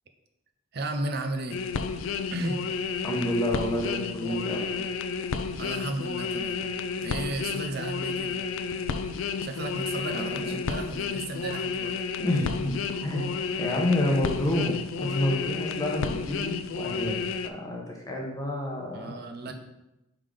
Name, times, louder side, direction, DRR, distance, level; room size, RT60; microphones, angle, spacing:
voice 1, 0.7-1.6 2.3-2.6 5.6-6.6 7.0-8.4 9.4-11.9 18.9-19.5, right 2 dB, 50° right, 5 dB, 0.6 m, -34 dB
sound 1, 1.5-17.5, left 5 dB, 75° left, 0.4 m, -31 dB
voice 2, 3.0-4.8 10.1-10.6 12.2-12.7 13.0-19.1 19.5-19.6, left 1 dB, 15° left, -1 dB, 0.9 m, -29 dB
5.5 x 3.7 x 5.0 m, 0.91 s
head